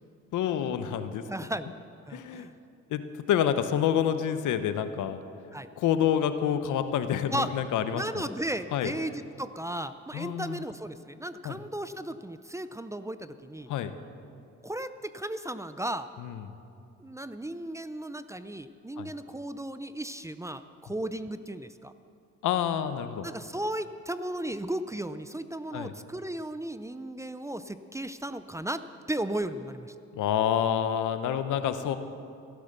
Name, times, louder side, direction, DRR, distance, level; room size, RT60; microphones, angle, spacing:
voice 1, 0.3-1.2 2.1-2.5 2.9-3.0 3.3-5.2 5.8-8.2 8.7-8.9 10.1-10.6 11.4-11.6 13.7-13.9 16.2-16.4 19.0-19.1 22.4-23.3 25.7-25.9 30.2-32.0, left 9 dB, 80° left, 11 dB, 0.9 m, -28 dB
voice 2, 1.3-1.7 2.1-2.5 5.5-5.7 7.3-7.5 7.9-13.7 14.6-16.1 17.0-21.9 23.2-28.8 29.1-29.9, right 1 dB, 10° right, 12 dB, 0.5 m, -35 dB
15.5 x 11.5 x 6.7 m, 2.5 s
cardioid pair, 90°, 30 cm